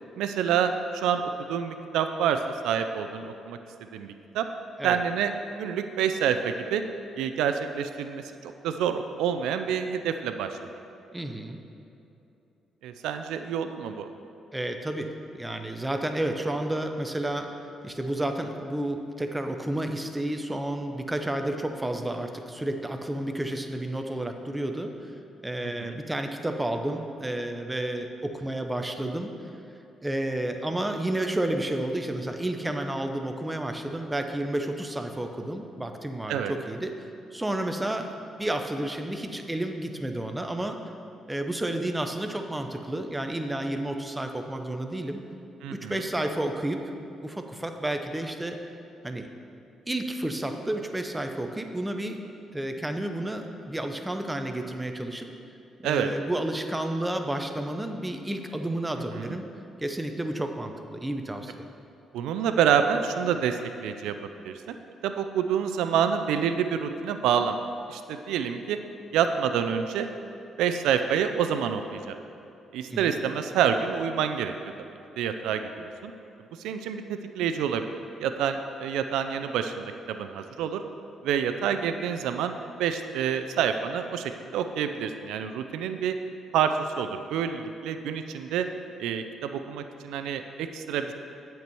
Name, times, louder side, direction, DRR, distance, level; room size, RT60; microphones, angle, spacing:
voice 1, 0.2-3.6 3.9-4.5 4.8-5.3 5.6-6.8 7.2-10.6 12.8-14.1 25.6-25.9 36.3-36.5 45.6-46.0 55.8-56.1 59.2-59.3 62.1-64.1 64.4-64.8 65.0-67.6 67.9-68.8 69.1-70.1 70.6-72.2 72.7-74.5 75.2-76.1 76.6-77.8 78.2-80.8 81.2-86.2 86.5-88.7 89.0-91.1, right 8 dB, 90° right, 8 dB, 0.4 m, -27 dB
voice 2, 11.1-11.6 14.5-17.5 17.8-25.1 25.4-29.3 30.0-36.9 37.3-40.8 41.3-45.2 45.7-46.8 47.2-48.6 49.0-49.3 49.9-52.2 52.5-55.3 55.8-59.5 59.8-61.6 72.9-73.1, right 1 dB, 10° right, 5 dB, 0.7 m, -31 dB
8.0 x 4.5 x 6.9 m, 2.8 s
cardioid pair, 90°, 0 cm